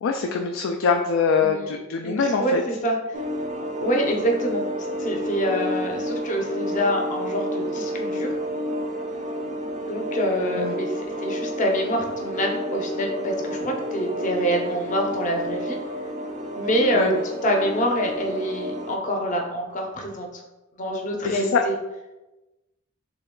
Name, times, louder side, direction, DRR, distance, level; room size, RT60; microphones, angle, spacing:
voice 1, 0.0-2.6 10.6-10.7 16.9-17.1 21.2-21.6, left 5 dB, 70° left, 3 dB, 0.3 m, -23 dB
voice 2, 1.4-1.7 2.0-3.2 3.8-8.3 9.9-15.8 16.5-20.4 20.8-21.7, equal, 40° left, 2 dB, 0.7 m, -26 dB
sound 1, 3.1-19.0, equal, 35° right, 0.4 m, -30 dB
3.3 x 3.0 x 3.6 m, 1.1 s
head